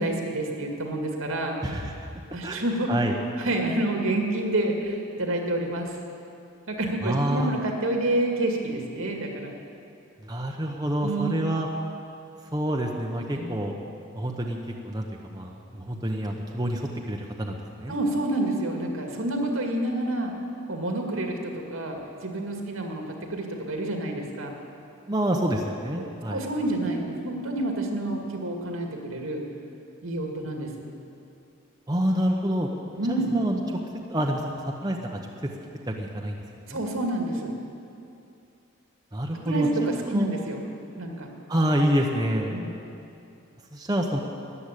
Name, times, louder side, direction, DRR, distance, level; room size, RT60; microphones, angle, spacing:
voice 1, 0.0-1.6 2.3-2.9 3.4-6.0 6.7-9.5 11.0-11.4 13.3-13.6 17.9-20.3 20.7-23.0 23.3-24.5 26.0-29.4 30.0-30.7 33.0-33.3 36.7-37.5 39.3-40.6 41.0-41.3 42.5-42.7, right 1 dB, 75° right, 2 dB, 2.2 m, -28 dB
voice 2, 1.6-1.9 2.4-2.6 2.9-3.1 7.0-7.5 10.2-11.7 12.5-13.7 14.1-14.6 14.8-15.1 15.3-17.9 25.1-26.4 31.9-32.7 33.1-33.6 34.1-35.5 35.9-36.4 36.7-36.8 39.1-40.3 41.5-42.5 43.7-44.2, equal, 20° right, 0 dB, 0.9 m, -27 dB
14.0 x 10.0 x 8.4 m, 2.6 s
head